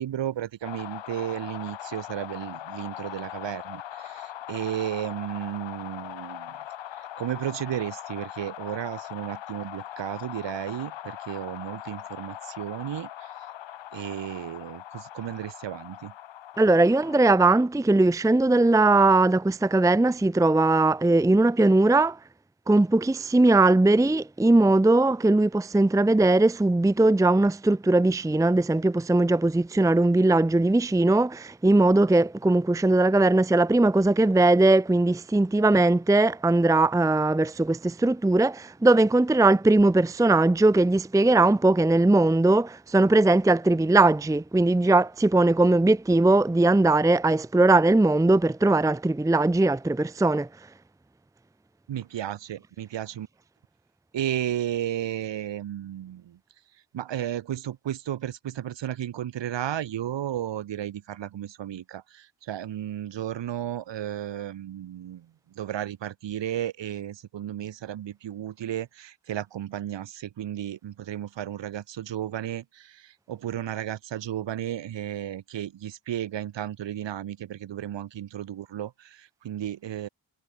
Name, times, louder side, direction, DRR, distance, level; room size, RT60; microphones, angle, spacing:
voice 1, 0.0-6.5 7.2-13.3 13.9-16.1 51.9-53.3 54.1-56.4 56.9-65.3 65.6-80.1, right 11 dB, 80° right, 2.3 m, -33 dB
sound 1, 0.6-17.4, left 12 dB, 85° left, 2.1 m, -40 dB
voice 2, 16.6-22.2 22.7-50.5, right 2 dB, 5° right, 0.7 m, -20 dB
cardioid pair, 95°, 44 cm